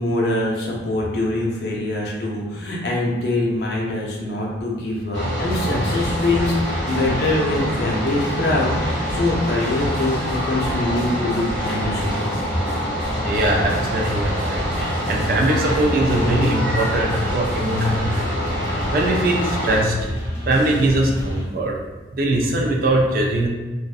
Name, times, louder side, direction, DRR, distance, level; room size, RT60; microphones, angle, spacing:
voice 1, 0.0-12.3, left 2 dB, 65° left, -3 dB, 0.6 m, -24 dB
sound 1, 5.1-19.8, equal, 85° right, 0.9 m, -26 dB
sound 2, 5.2-21.4, equal, 15° left, 0.6 m, -31 dB
voice 2, 13.2-18.3 18.6-20.0 20.5-21.8 22.1-23.5, right 1 dB, 50° right, -1 dB, 0.4 m, -21 dB
2.5 x 2.1 x 2.4 m, 1.2 s
head